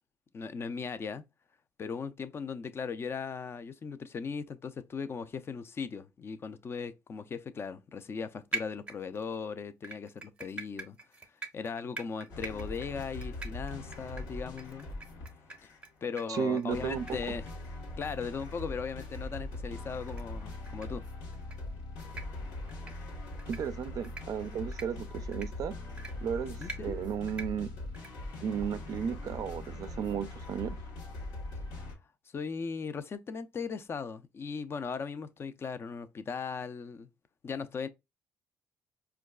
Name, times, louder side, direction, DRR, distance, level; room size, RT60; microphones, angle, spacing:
voice 1, 0.3-1.2 1.8-11.0 11.5-14.9 15.6-15.7 16.0-17.5 18.0-21.1 26.6-26.9 32.3-37.1 37.4-37.9, left 5 dB, 35° left, 0.4 m, -38 dB
sound 1, 8.5-9.4 9.8-15.9 16.2-16.3 16.6-16.7 17.1-17.2 17.5-17.6 18.0-18.1 18.5-18.6 19.0-19.1 20.1-20.2 20.7-20.9 21.3-21.6 22.0-22.2 22.7-22.9 23.4-23.6 24.0-24.2 24.7-24.9 25.3-25.5 26.0-26.1 26.6-26.8 27.3-27.5 27.9-28.1, right 3 dB, 15° right, 0.7 m, -41 dB
sound 2, 12.3-15.9 16.3-31.9, left 2 dB, 80° left, 0.9 m, -41 dB
voice 2, 16.3-17.2 23.5-25.7 26.2-27.7 28.4-30.8, right 7 dB, 55° right, 0.4 m, -34 dB
4.5 x 2.3 x 2.2 m
supercardioid pair, 85°, 7 cm